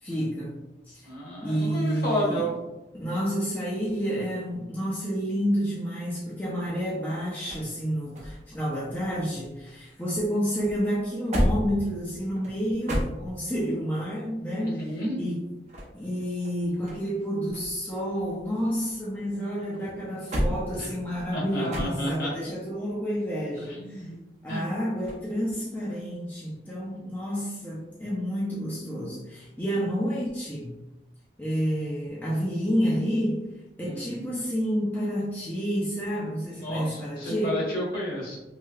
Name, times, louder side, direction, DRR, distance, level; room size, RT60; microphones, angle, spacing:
voice 1, 0.0-0.5 0.9-1.1 1.4-2.5 3.0-15.5 15.9-24.1 24.4-30.8 31.4-37.6, equal, 10° left, -7 dB, 0.4 m, -29 dB
voice 2, 1.0-2.5 14.6-15.2 20.8-20.9 21.3-22.3 23.6-24.2 24.5-24.6 33.8-34.4 36.5-38.4, equal, 55° left, -5 dB, 1.1 m, -31 dB
sound 1, 6.7-9.8 10.1-13.7 15.4-17.2 17.5-19.3 19.7-22.4 25.0-25.3, equal, 40° right, 0.6 m, -33 dB
3.2 x 2.7 x 2.3 m, 0.98 s
head